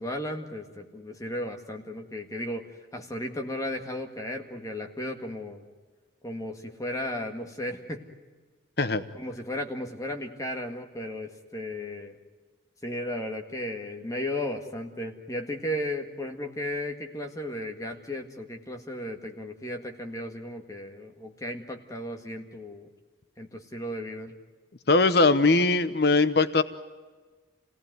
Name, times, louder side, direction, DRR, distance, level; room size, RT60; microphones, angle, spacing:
voice 1, 0.0-5.7 6.2-8.1 9.1-12.2 12.8-22.9 23.4-24.3, left 1 dB, 15° left, 3 dB, 1.8 m, -35 dB
voice 2, 24.9-26.6, left 3 dB, 55° left, 11 dB, 0.9 m, -21 dB
28.5 x 17.5 x 9.4 m, 1.4 s
head